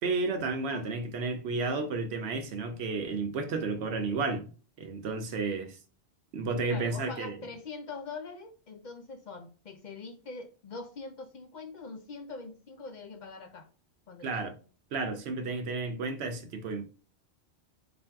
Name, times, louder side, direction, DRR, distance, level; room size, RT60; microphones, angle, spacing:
voice 1, 0.0-4.5 4.8-5.8 6.3-7.4 14.2-14.6 14.9-16.9, right 3 dB, 85° right, 0.9 m, -32 dB
voice 2, 6.7-13.7 14.1-14.5, left 4 dB, 55° left, 0.6 m, -43 dB
3.8 x 2.6 x 3.3 m
omnidirectional pair, 1.1 m